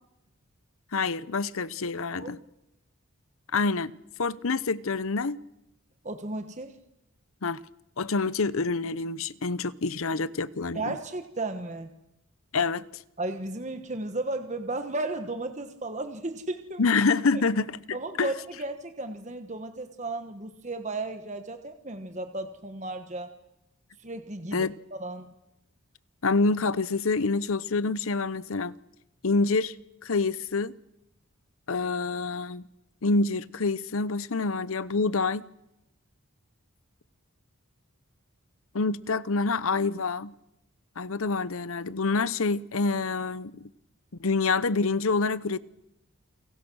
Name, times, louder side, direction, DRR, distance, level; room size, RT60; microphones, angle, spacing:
voice 1, 0.9-2.4 3.5-3.9 4.2-5.4 7.4-7.6 8.0-10.9 12.5-13.0 16.8-18.3 24.5-24.7 26.2-28.7 29.2-29.7 30.0-30.7 31.7-32.6 33.0-35.5 38.7-40.3 41.0-43.7 44.2-45.6, left 3 dB, 70° left, 0.8 m, -27 dB
voice 2, 6.0-6.8 10.7-11.9 13.2-16.8 17.9-23.3 24.0-25.3, right 2 dB, 30° right, 1.3 m, -34 dB
29.0 x 23.0 x 6.3 m
head